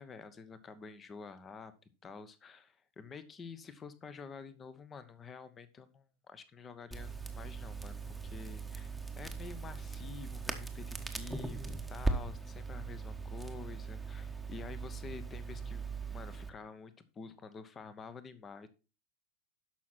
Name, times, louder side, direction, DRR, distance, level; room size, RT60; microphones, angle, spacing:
voice 1, 0.0-1.7 2.0-18.7, left 5 dB, 20° left, 14 dB, 1.1 m, -49 dB
Crackle, 6.9-16.5, right 3 dB, ahead, 1.2 m, -40 dB
11.5 x 6.1 x 4.2 m, 0.33 s
figure-of-eight pair, 90°, 0 cm